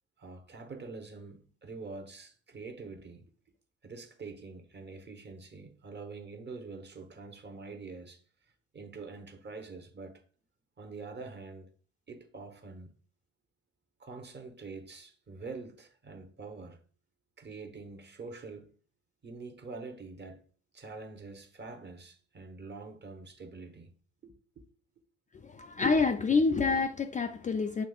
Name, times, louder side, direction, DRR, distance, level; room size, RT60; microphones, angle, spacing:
voice 1, 0.2-3.3 3.8-8.2 8.7-10.2 10.8-11.7 12.1-12.9 14.0-16.8 17.4-18.7 19.2-20.4 20.7-23.9 24.2-24.7 26.5-26.6, right 4 dB, 35° right, 0.9 m, -45 dB
voice 2, 25.4-27.9, left 4 dB, 25° left, 0.4 m, -27 dB
6.5 x 3.0 x 2.3 m
hypercardioid pair, 55°, 32 cm